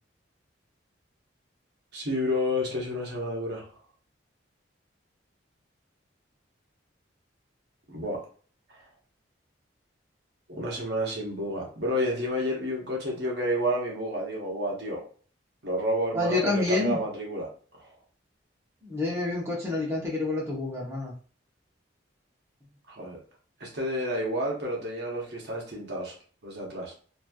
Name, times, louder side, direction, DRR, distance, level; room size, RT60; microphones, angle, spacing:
voice 1, 1.9-3.8 7.9-8.2 8.7-8.8 10.5-15.0 15.6-17.5 17.7-17.9 22.9-23.2 23.6-26.2 26.4-26.9, equal, 55° right, -2 dB, 0.9 m, -30 dB
voice 2, 16.1-17.0 18.8-21.1, left 3 dB, 15° right, -5 dB, 0.8 m, -28 dB
3.0 x 2.6 x 2.3 m, 0.41 s
head